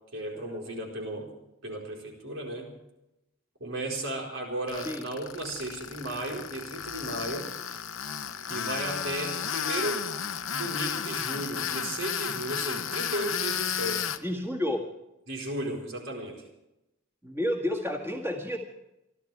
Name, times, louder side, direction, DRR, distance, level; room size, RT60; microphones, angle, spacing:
voice 1, 0.1-1.3 1.6-2.7 3.6-7.5 8.5-10.1 10.5-14.1 15.3-16.4, right 1 dB, 70° right, 0 dB, 4.7 m, -35 dB
Tools, 4.7-14.2, left 8 dB, 75° left, 0.9 m, -33 dB
voice 2, 14.2-14.8 17.2-18.6, left 1 dB, 10° right, 1 dB, 2.0 m, -30 dB
28.5 x 12.5 x 3.5 m, 0.90 s
head